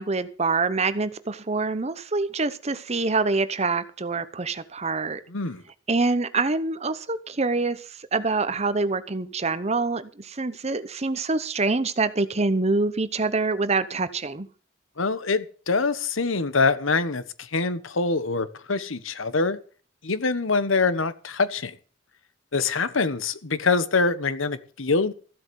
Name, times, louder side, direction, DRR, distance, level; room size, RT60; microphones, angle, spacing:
voice 1, 0.0-5.2 5.9-7.8 8.1-14.5, right 3 dB, 35° right, 0.9 m, -25 dB
voice 2, 5.3-5.6 15.0-19.6 20.0-21.7 22.5-25.1, left 4 dB, 85° left, 1.2 m, -24 dB
15.0 x 7.9 x 7.0 m
head